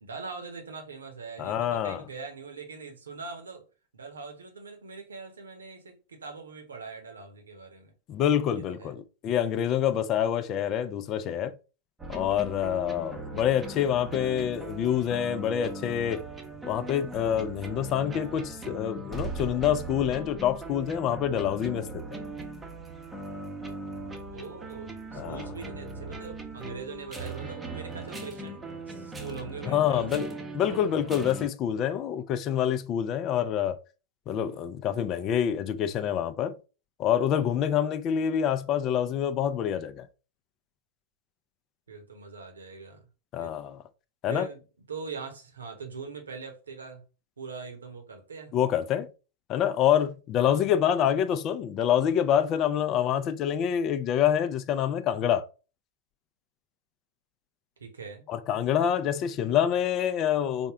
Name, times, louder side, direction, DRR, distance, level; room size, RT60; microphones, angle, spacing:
voice 1, 0.0-3.7 3.9-7.9 8.5-8.9 24.3-28.6 28.9-30.4 30.7-30.8 41.9-43.1 43.4-43.5 44.3-44.6 44.9-47.0 47.4-48.5 50.4-50.7 57.8-58.3, right 5 dB, 90° right, 0.9 m, -42 dB
voice 2, 1.4-2.0 8.1-11.5 12.1-16.2 16.6-22.0 25.1-25.5 29.7-33.8 34.3-36.5 37.0-40.1 43.3-43.8 44.2-44.5 48.5-49.1 49.5-55.4 58.3-60.7, left 9 dB, 40° left, 0.4 m, -26 dB
sound 1, 12.0-31.5, right 2 dB, 10° right, 0.7 m, -39 dB
3.5 x 2.2 x 3.4 m
hypercardioid pair, 105°, 0 cm